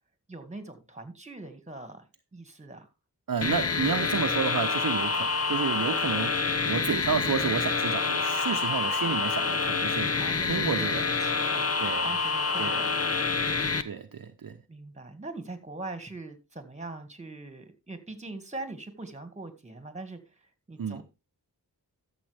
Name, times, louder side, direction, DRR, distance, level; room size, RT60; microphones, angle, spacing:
voice 1, 0.3-2.0 2.3-2.9 10.0-13.0 14.7-21.0, right 2 dB, 20° right, 2.0 m, -42 dB
voice 2, 3.3-10.2 10.5-11.1 11.8-12.1 12.6-12.8 13.8-14.6 20.8-21.0, right 6 dB, 60° right, 0.8 m, -31 dB
sound 1, 3.4-13.8, left 4 dB, 40° left, 0.9 m, -27 dB
13.0 x 7.3 x 3.4 m
wide cardioid pair, 80°, 38 cm